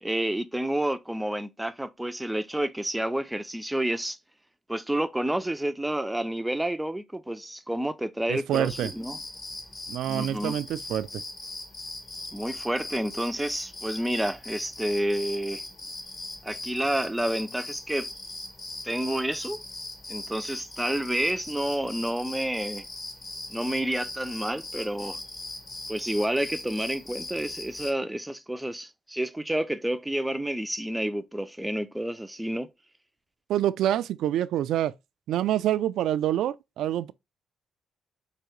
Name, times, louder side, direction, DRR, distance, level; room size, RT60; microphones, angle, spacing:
voice 1, 0.0-4.2 4.7-9.2 10.0-10.6 12.3-15.6 16.4-18.1 18.8-19.6 20.1-22.9 23.5-25.2 25.9-32.7, right 1 dB, 5° right, 0.4 m, -29 dB
voice 2, 8.3-8.9 9.9-11.2 33.5-34.9 35.3-37.1, right 11 dB, 80° right, 0.3 m, -26 dB
sound 1, 8.5-27.9, left 2 dB, 30° left, 1.1 m, -40 dB
4.7 x 2.6 x 3.0 m
cardioid pair, 90°, 0 cm